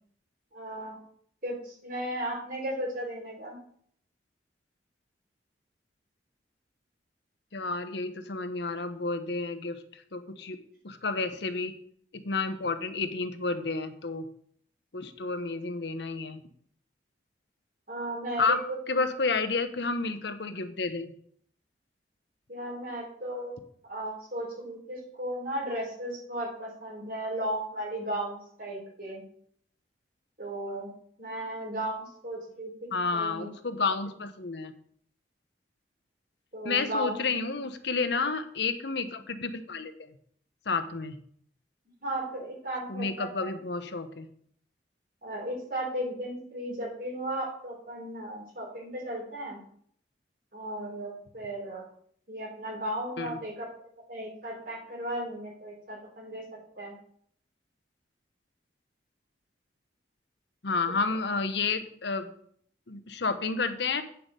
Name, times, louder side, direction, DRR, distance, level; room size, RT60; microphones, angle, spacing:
voice 1, 0.5-1.0 1.4-3.6 17.9-18.6 22.5-29.2 30.4-30.9 31.2-32.7 33.1-33.5 36.5-37.2 42.0-43.5 45.2-49.6 50.5-51.8 52.3-56.4 56.7-56.9, right 1 dB, 50° right, -3 dB, 4.8 m, -35 dB
voice 2, 7.5-10.6 10.8-11.7 12.1-14.2 14.9-16.4 18.4-18.6 18.9-21.1 32.9-34.7 36.6-39.9 40.7-41.2 42.9-44.3 53.2-53.4 60.6-62.3 62.9-64.0, left 4 dB, 70° left, 10 dB, 0.9 m, -30 dB
9.2 x 5.8 x 6.6 m, 0.62 s
head